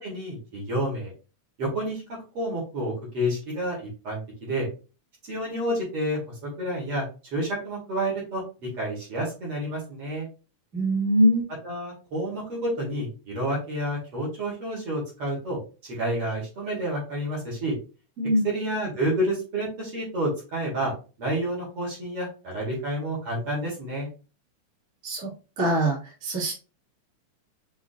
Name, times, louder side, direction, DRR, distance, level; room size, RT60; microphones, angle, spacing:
voice 1, 0.0-1.1 1.6-4.7 5.2-7.0 7.3-10.3 11.6-17.8 18.4-20.9 21.2-24.1, right 1 dB, 50° right, -4 dB, 2.6 m, -29 dB
voice 2, 10.7-11.5 18.2-18.4 25.0-25.3 25.6-26.6, equal, 25° right, -4 dB, 2.0 m, -23 dB
6.2 x 3.1 x 2.4 m, 0.33 s
omnidirectional pair, 3.5 m